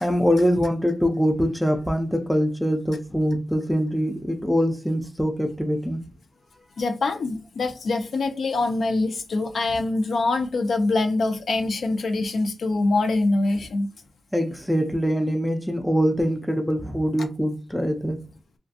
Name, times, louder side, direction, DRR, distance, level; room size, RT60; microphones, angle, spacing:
voice 1, 0.0-6.0 14.3-18.2, equal, ahead, 0.4 m, -23 dB
voice 2, 6.8-13.9 17.2-17.3, left 2 dB, 75° left, 0.4 m, -24 dB
2.6 x 2.3 x 2.4 m
wide cardioid pair, 130°, 0 cm